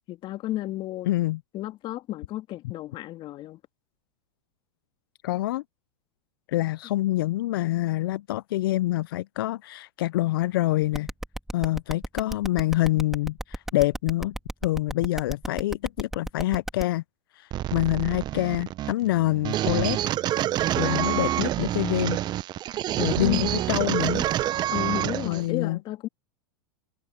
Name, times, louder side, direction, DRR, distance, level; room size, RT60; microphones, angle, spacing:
voice 1, 0.1-1.1 1.5-3.6 23.2-23.5 24.7-26.1, left 15 dB, 40° left, 3.0 m, -33 dB
voice 2, 1.1-1.4 5.2-5.6 6.5-11.1 11.5-14.4 14.6-17.0 17.3-20.0 20.8-22.2 23.0-24.3 25.2-25.8, left 16 dB, 70° left, 0.5 m, -26 dB
sound 1, 10.9-16.8, right 1 dB, 5° right, 3.2 m, -33 dB
sound 2, 17.5-25.5, right 13 dB, 35° right, 0.8 m, -27 dB
hypercardioid pair, 105°, 12 cm